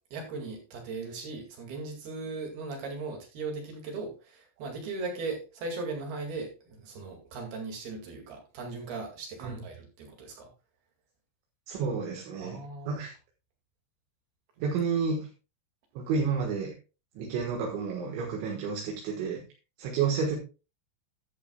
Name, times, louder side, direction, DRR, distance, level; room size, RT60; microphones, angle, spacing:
voice 1, 0.1-10.5 12.4-13.0, right 3 dB, 60° right, 2 dB, 3.8 m, -38 dB
voice 2, 11.7-12.6 12.9-13.2 14.6-15.3 16.0-16.7 17.2-19.4 19.8-20.4, right 5 dB, 75° right, 1 dB, 3.7 m, -30 dB
12.0 x 10.5 x 2.3 m, 0.31 s
omnidirectional pair, 5.5 m